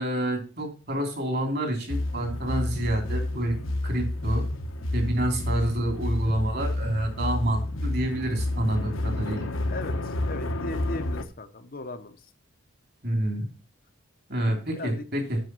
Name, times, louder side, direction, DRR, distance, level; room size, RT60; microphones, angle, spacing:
voice 1, 0.0-3.6 3.8-4.4 4.9-9.5 13.0-13.5 14.3-15.4, right 1 dB, 50° right, 3 dB, 3.1 m, -28 dB
sound 1, 1.9-11.2, left 1 dB, 80° left, 1.1 m, -30 dB
voice 2, 9.7-12.3 14.7-15.3, left 2 dB, 45° left, 9 dB, 0.8 m, -38 dB
7.9 x 6.4 x 6.0 m, 0.36 s
head